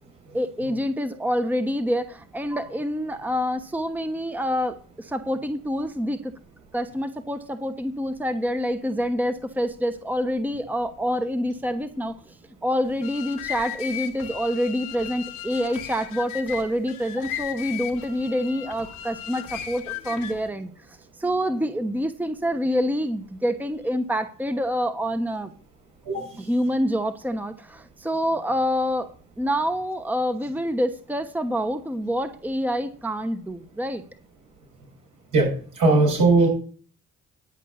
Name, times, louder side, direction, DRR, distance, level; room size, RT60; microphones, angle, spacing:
voice 1, 0.3-6.3 6.7-12.4 12.6-25.5 26.4-29.1 29.4-34.0, equal, 5° right, 9 dB, 1.0 m, -27 dB
sound 1, 12.8-20.5, left 10 dB, 85° left, 1.4 m, -36 dB
voice 2, 35.8-36.5, right 3 dB, 75° right, -1 dB, 6.8 m, -18 dB
10.5 x 5.4 x 7.1 m, 0.43 s
supercardioid pair, 55°, 31 cm